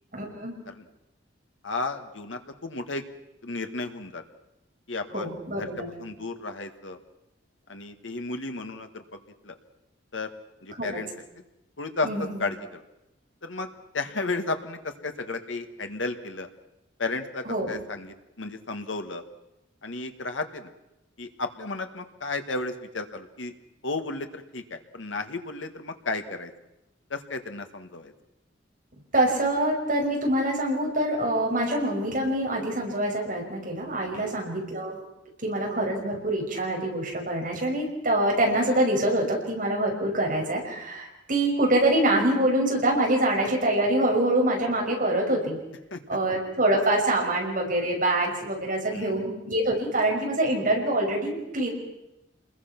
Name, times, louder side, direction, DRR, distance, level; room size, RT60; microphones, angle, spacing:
voice 1, 0.1-0.5 5.1-5.9 10.8-11.0 12.0-12.4 17.5-17.7 29.1-35.0 35.4-45.6 46.1-51.7, right 1 dB, 45° right, 0 dB, 5.7 m, -25 dB
voice 2, 1.6-3.0 3.4-4.2 4.9-5.3 5.6-7.0 7.7-9.6 10.1-10.3 10.6-11.4 11.8-12.8 13.4-13.7 13.9-16.5 17.0-19.2 19.8-20.7 21.2-23.5 23.8-26.5 27.1-28.1 34.1-34.4 45.9-46.0 48.9-49.2, left 3 dB, 90° left, 6 dB, 1.7 m, -33 dB
27.0 x 21.0 x 6.0 m, 0.92 s
head